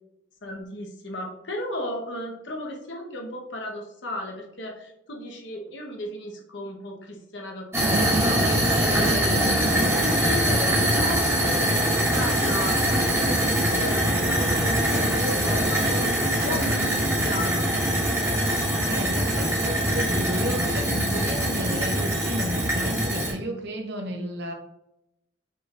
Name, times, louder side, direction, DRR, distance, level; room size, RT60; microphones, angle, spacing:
voice 1, 0.4-17.7, left 1 dB, 65° left, 1 dB, 1.0 m, -35 dB
sound 1, 7.7-23.3, right 1 dB, 15° right, 1.3 m, -23 dB
voice 2, 18.9-24.5, equal, 55° right, 2 dB, 0.9 m, -32 dB
5.8 x 3.8 x 2.4 m, 0.84 s
head